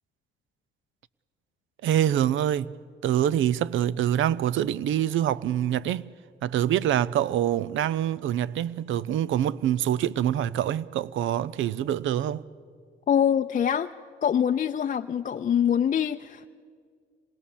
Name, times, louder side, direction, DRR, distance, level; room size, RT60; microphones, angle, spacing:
voice 1, 1.8-2.7 3.0-6.1 6.4-12.4, right 11 dB, 75° right, 0.6 m, -25 dB
voice 2, 13.1-13.9 14.2-16.5, left 8 dB, 40° left, 0.5 m, -24 dB
26.0 x 20.0 x 7.1 m
cardioid pair, 90°, 20 cm